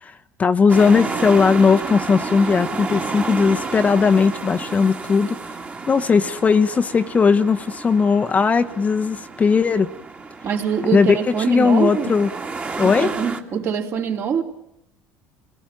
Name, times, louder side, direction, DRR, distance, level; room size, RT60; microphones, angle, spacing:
voice 1, 0.0-5.4 5.9-9.9 10.9-11.2 11.5-12.3 12.8-13.1, left 5 dB, 25° left, 8 dB, 0.9 m, -18 dB
sound 1, 0.7-13.4, right 4 dB, 25° right, 2.2 m, -31 dB
voice 2, 10.4-12.1 12.8-14.4, right 7 dB, 45° right, 3 dB, 3.5 m, -24 dB
27.5 x 17.5 x 8.9 m, 0.82 s
cardioid pair, 120°, 6 cm